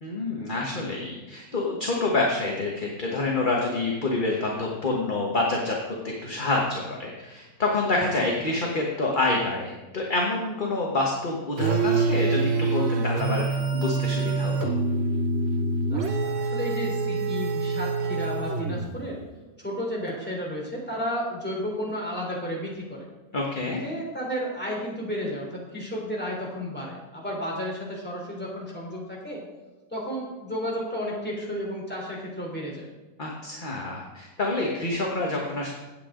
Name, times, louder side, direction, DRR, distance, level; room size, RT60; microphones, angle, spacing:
voice 1, 0.0-13.4 13.7-14.7 23.3-23.8 33.2-35.7, left 2 dB, 30° left, -1 dB, 1.4 m, -27 dB
sound 1, 11.6-19.0, right 4 dB, 50° right, 0.9 m, -26 dB
voice 2, 15.9-19.2 19.6-23.1 23.8-29.4 29.9-32.9, equal, 5° left, -3 dB, 3.5 m, -32 dB
16.0 x 8.4 x 3.8 m, 1.1 s
omnidirectional pair, 1.9 m